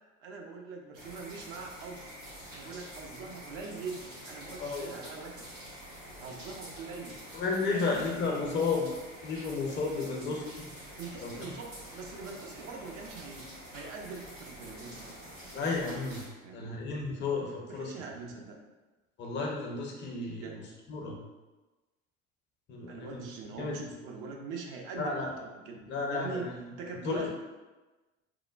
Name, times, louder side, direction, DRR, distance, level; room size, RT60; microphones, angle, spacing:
voice 1, 0.2-2.0 2.5-5.5 6.1-7.2 7.7-8.3 10.8-13.4 13.7-15.2 16.4-16.7 17.7-18.6 20.4-20.6 22.9-25.8 26.1-27.3, right 4 dB, 50° right, 1 dB, 0.4 m, -42 dB
sound 1, 0.9-16.3, equal, 85° right, 1.0 m, -47 dB
voice 2, 4.6-4.9 7.3-8.9 9.2-10.4 11.2-11.3 15.5-16.2 16.5-18.3 19.2-20.5 20.9-21.2 22.7-23.3 23.6-23.9 25.0-25.3 25.9-26.5 26.9-27.3, left 4 dB, 30° left, -1 dB, 0.5 m, -33 dB
3.0 x 2.1 x 2.2 m, 1.2 s
figure-of-eight pair, 65°, 38 cm